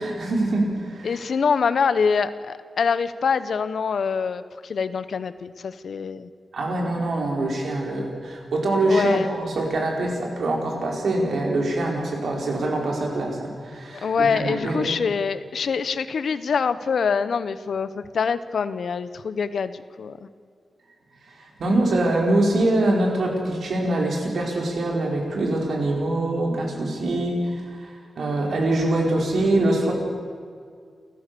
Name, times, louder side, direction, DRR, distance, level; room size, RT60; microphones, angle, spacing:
voice 1, 0.0-1.2 6.5-14.9 21.6-27.9 28.2-29.9, right 2 dB, 75° right, 0 dB, 4.9 m, -24 dB
voice 2, 1.0-6.3 8.9-9.3 14.0-20.3, left 6 dB, 70° left, 13 dB, 0.9 m, -25 dB
29.0 x 14.5 x 6.9 m, 2.1 s
wide cardioid pair, 135°, 0 cm